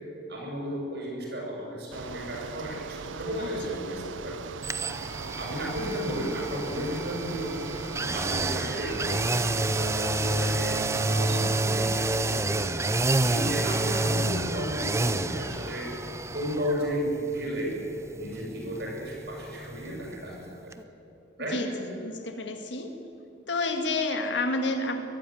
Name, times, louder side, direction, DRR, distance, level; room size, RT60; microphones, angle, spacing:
voice 1, 0.3-4.4 5.4-7.6 8.1-10.8 11.1-12.9 13.2-15.9 16.3-17.8 18.2-20.7 21.4-21.6, equal, 60° right, -2 dB, 7.2 m, -33 dB
Bicycle, 1.9-11.5, right 5 dB, 85° right, 0.6 m, -40 dB
sound 1, 4.6-20.4 20.7-20.8, right 2 dB, 15° right, 0.6 m, -29 dB
voice 2, 21.5-23.0 23.5-25.0, left 2 dB, 70° left, 6 dB, 2.0 m, -30 dB
21.5 x 14.0 x 9.3 m, 2.7 s
head